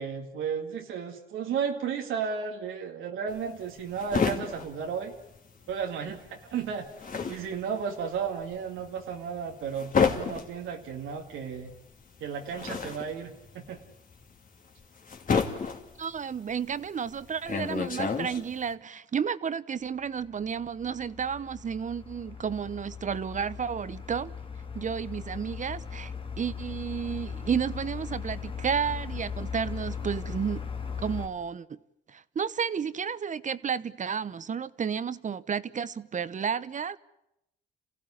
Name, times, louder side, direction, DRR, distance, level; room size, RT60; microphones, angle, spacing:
voice 1, 0.0-5.1 5.7-6.9 7.1-11.7 12.2-13.8, right 6 dB, 85° right, 2.2 m, -34 dB
sound 1, 3.3-5.8 6.1-18.7, left 5 dB, 45° left, 2.7 m, -31 dB
voice 2, 16.0-24.3 24.7-30.7 31.0-31.8 32.1-37.0, right 7 dB, 40° right, 0.9 m, -32 dB
sound 2, 20.2-31.3, left 6 dB, 25° left, 2.2 m, -38 dB
28.0 x 16.0 x 9.8 m
cardioid pair, 90°, 20 cm